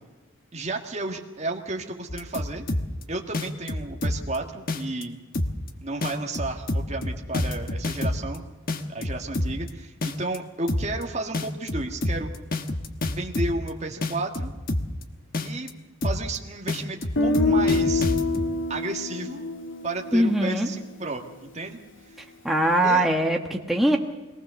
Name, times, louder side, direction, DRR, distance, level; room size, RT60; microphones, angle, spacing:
voice 1, 0.5-2.7 3.1-5.2 5.8-8.4 8.9-12.3 13.2-14.5 15.4-15.7 16.0-18.1 18.7-19.4 19.8-21.8 22.0-22.2 22.8-23.1, right 2 dB, 30° right, 2 dB, 1.7 m, -32 dB
sound 1, 2.1-3.0 3.3-4.4 4.7-5.0 5.3-5.7 6.0-8.4 8.7-9.7 10.0-10.4 10.7-11.0 11.3-13.7 14.0-15.0 15.3-15.7 16.0-16.4 16.7-18.5, left 1 dB, 40° left, 1.2 m, -27 dB
Guitar, 17.2-21.1, left 3 dB, 65° left, 2.9 m, -26 dB
voice 2, 20.1-20.7 22.4-24.0, right 1 dB, ahead, 1 dB, 1.3 m, -21 dB
22.0 x 19.0 x 6.9 m, 1.2 s
head